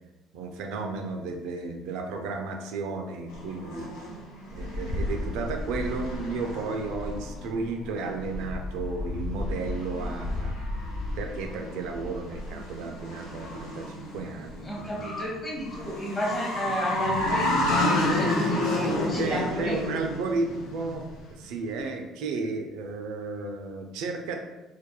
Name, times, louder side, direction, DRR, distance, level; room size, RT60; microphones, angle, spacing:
voice 1, 0.3-4.0 4.5-10.6 11.2-15.1 19.2-24.4, right 3 dB, 75° right, 4 dB, 0.3 m, -33 dB
sound 1, 3.3-21.3, left 1 dB, 85° left, 0.6 m, -31 dB
voice 2, 14.6-20.0, equal, 30° left, -4 dB, 1.2 m, -33 dB
2.2 x 2.1 x 2.9 m, 1.1 s
hypercardioid pair, 65°, 0 cm